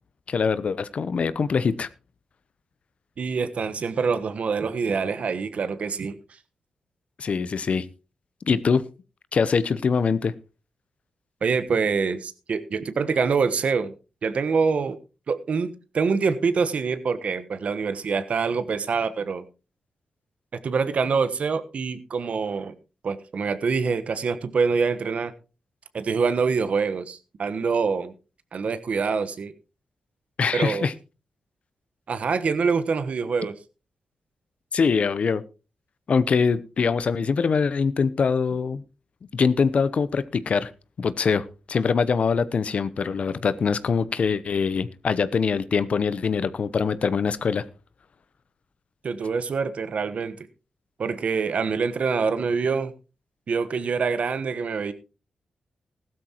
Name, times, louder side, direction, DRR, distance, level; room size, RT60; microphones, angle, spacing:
voice 1, 0.3-1.9 7.2-7.9 8.5-8.8 9.3-10.3 30.4-30.9 34.7-35.4 36.1-38.8 39.3-40.7 41.0-47.6, left 5 dB, 60° left, 16 dB, 0.8 m, -23 dB
voice 2, 3.2-6.2 11.4-13.9 14.2-15.0 15.3-19.4 20.6-22.7 23.0-25.3 25.9-28.1 28.5-29.5 30.5-30.9 32.1-33.5 49.0-50.5 51.0-52.9 53.5-54.9, right 5 dB, 65° right, 12 dB, 1.2 m, -25 dB
15.5 x 12.5 x 3.0 m, 0.31 s
cardioid pair, 55°, 2 cm